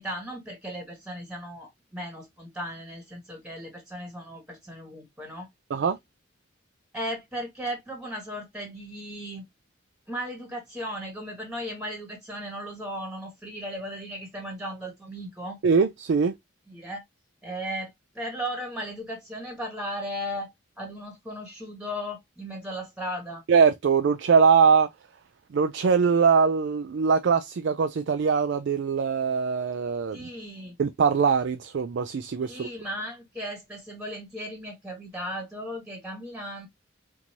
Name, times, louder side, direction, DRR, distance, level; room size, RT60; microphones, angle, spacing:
voice 1, 0.0-5.5 6.9-9.4 10.1-15.6 16.7-17.0 17.4-20.5 20.8-23.4 30.1-30.8 32.4-36.7, equal, 5° right, 1.3 m, -36 dB
voice 2, 15.6-16.3 23.5-24.9 25.5-30.2 30.8-32.7, right 5 dB, 60° right, 0.3 m, -22 dB
4.4 x 2.7 x 2.7 m
head